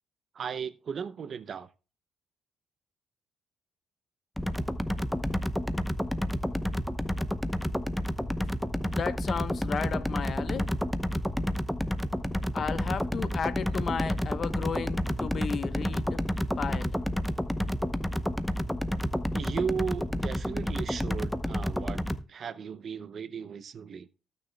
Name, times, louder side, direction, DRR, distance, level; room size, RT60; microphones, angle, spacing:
voice 1, 0.3-1.7 19.3-22.0 22.3-24.1, right 6 dB, 50° right, 0.7 m, -35 dB
sound 1, 4.4-22.2, equal, 5° left, 0.8 m, -30 dB
voice 2, 8.9-10.7 12.5-16.2 16.6-17.0, left 6 dB, 50° left, 0.9 m, -34 dB
18.0 x 6.6 x 2.3 m
cardioid pair, 85°, 0 cm